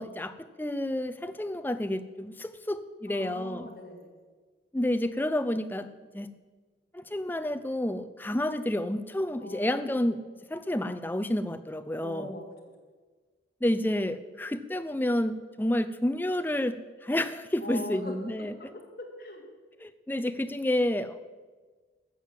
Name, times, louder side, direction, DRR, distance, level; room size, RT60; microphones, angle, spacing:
voice 1, 0.0-3.7 4.7-5.9 6.1-6.3 6.9-10.2 10.5-12.3 13.6-18.5 19.8-21.2, left 1 dB, 10° left, 11 dB, 0.5 m, -30 dB
voice 2, 3.1-4.1 9.4-9.9 12.0-12.5 17.6-19.5, left 1 dB, 50° left, 0 dB, 2.6 m, -41 dB
13.5 x 7.4 x 7.5 m, 1.4 s
head